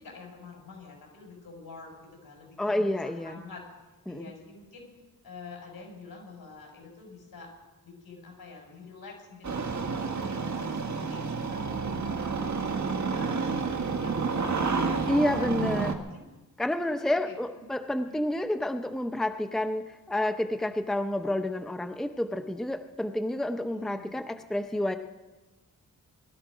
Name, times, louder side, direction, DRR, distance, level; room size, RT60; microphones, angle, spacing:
voice 1, 0.0-3.7 4.1-4.9 5.2-7.5 7.8-11.2 11.5-15.5 15.8-16.2 16.8-17.7 18.1-18.2 23.7-24.2, left 4 dB, 75° left, 1 dB, 5.9 m, -47 dB
voice 2, 2.6-3.4 4.1-4.3 15.1-15.9 16.6-25.0, left 1 dB, ahead, 7 dB, 0.7 m, -29 dB
Engine starting, 9.4-15.9, right 4 dB, 50° right, 1.6 m, -30 dB
20.0 x 13.0 x 5.1 m, 1.1 s
wide cardioid pair, 100°, 36 cm